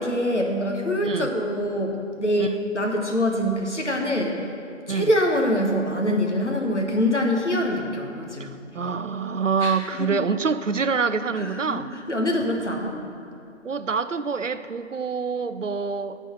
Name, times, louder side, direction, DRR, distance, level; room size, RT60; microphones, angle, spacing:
voice 1, 0.0-4.5 4.9-8.5 9.6-10.1 11.3-13.0, equal, 60° left, 1 dB, 1.4 m, -25 dB
voice 2, 8.7-11.9 13.6-16.2, right 5 dB, 70° right, 12 dB, 0.5 m, -26 dB
10.0 x 4.5 x 7.6 m, 2.4 s
figure-of-eight pair, 180°, 39 cm